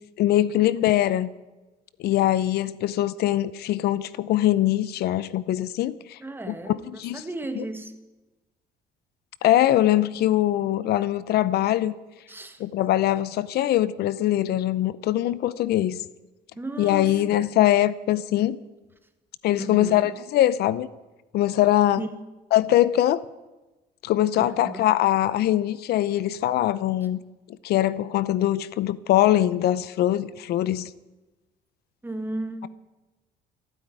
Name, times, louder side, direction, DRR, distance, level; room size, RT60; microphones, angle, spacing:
voice 1, 0.2-1.3 2.0-6.2 6.5-7.2 7.6-7.7 9.4-11.9 12.6-16.0 16.8-18.6 19.4-20.9 21.3-22.0 22.5-23.2 24.0-27.2 27.6-30.9, left 13 dB, 70° left, 17 dB, 0.7 m, -22 dB
voice 2, 6.2-6.8 7.1-7.9 12.3-12.6 16.5-17.5 19.5-20.1 22.0-22.2 24.4-24.9 32.0-32.7, right 2 dB, 10° right, 7 dB, 1.7 m, -35 dB
15.5 x 9.3 x 9.3 m, 1.1 s
cardioid pair, 110°, 17 cm